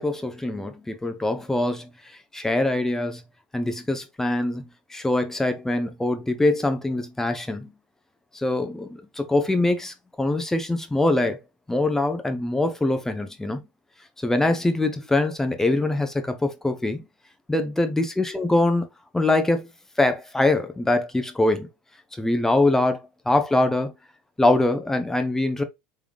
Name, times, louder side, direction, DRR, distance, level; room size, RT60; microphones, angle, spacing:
voice 1, 0.0-1.9 2.3-3.2 3.5-7.7 8.3-11.4 11.7-13.6 14.2-17.1 17.5-18.9 19.1-19.7 20.0-21.7 22.2-23.0 23.3-23.9 24.4-25.6, left 2 dB, 10° left, 0.9 m, -23 dB
3.5 x 3.4 x 2.5 m
hypercardioid pair, 85°, 5 cm